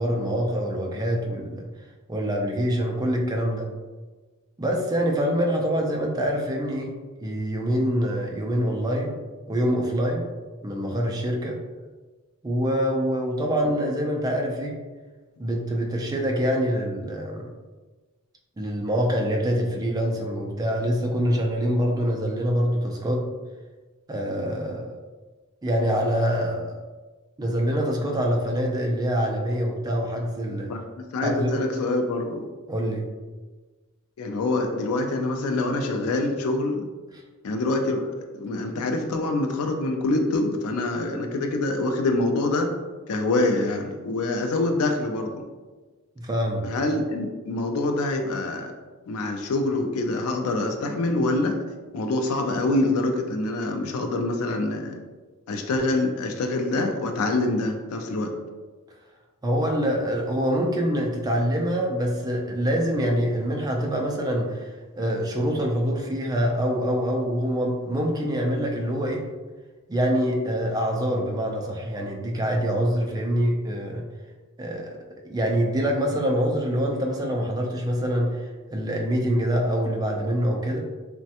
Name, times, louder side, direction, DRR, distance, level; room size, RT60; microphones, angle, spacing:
voice 1, 0.0-1.7 2.1-3.7 4.6-6.9 7.2-9.2 9.5-10.2 10.6-11.6 12.4-14.8 15.4-17.5 18.6-23.2 24.1-25.0 25.6-26.7 27.4-30.7 31.2-31.6 32.7-33.0 46.2-46.6 59.4-69.3 69.9-74.0 74.6-74.9 75.2-78.4 78.7-80.8, equal, 15° right, 0 dB, 0.3 m, -25 dB
voice 2, 30.7-32.5 34.2-36.9 37.4-42.7 43.1-45.4 46.6-48.7 49.1-51.6 51.9-55.0 55.5-58.3, left 2 dB, 75° left, 4 dB, 0.4 m, -25 dB
3.2 x 2.1 x 2.8 m, 1.3 s
head